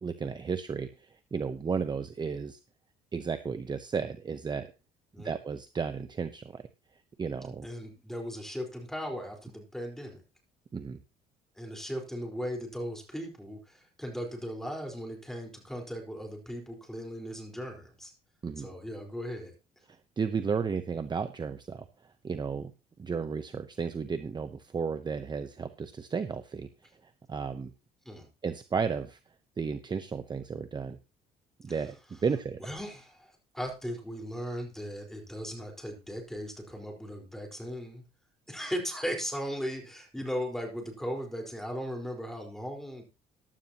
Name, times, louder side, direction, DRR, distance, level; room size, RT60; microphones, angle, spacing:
voice 1, 0.0-2.6 3.1-4.7 5.2-6.6 7.2-7.7 10.7-11.0 18.4-18.7 20.2-21.8 22.2-22.7 23.0-26.7 27.0-27.7 28.4-29.2 29.6-31.0 31.6-32.0 32.2-32.6, right 5 dB, 25° right, 10 dB, 0.8 m, -33 dB
voice 2, 7.6-10.2 11.6-18.1 18.6-19.5 28.0-28.3 31.7-31.8 32.6-38.0 38.5-43.0, equal, ahead, 2 dB, 4.4 m, -37 dB
15.0 x 11.0 x 2.9 m, 0.29 s
cardioid pair, 110°, 17 cm